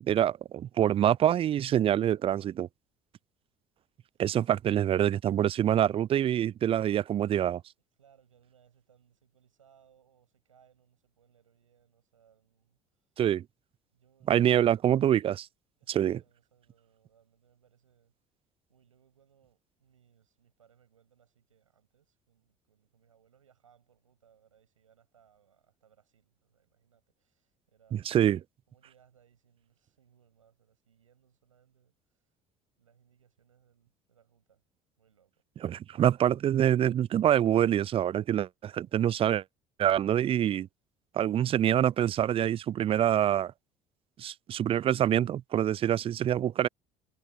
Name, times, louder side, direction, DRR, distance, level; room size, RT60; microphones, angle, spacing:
voice 1, 0.0-2.7 4.2-7.6 13.2-13.4 14.3-15.5 15.9-16.2 27.9-28.4 35.6-39.4 39.8-40.7 41.1-43.5 44.2-46.7, right 11 dB, 35° right, 0.4 m, -25 dB
voice 2, 8.0-13.1 13.9-14.7 15.8-18.1 18.7-28.2 28.7-32.3 32.8-34.6 35.0-35.4, right 8 dB, 85° right, 7.1 m, -66 dB
figure-of-eight pair, 60°, 16 cm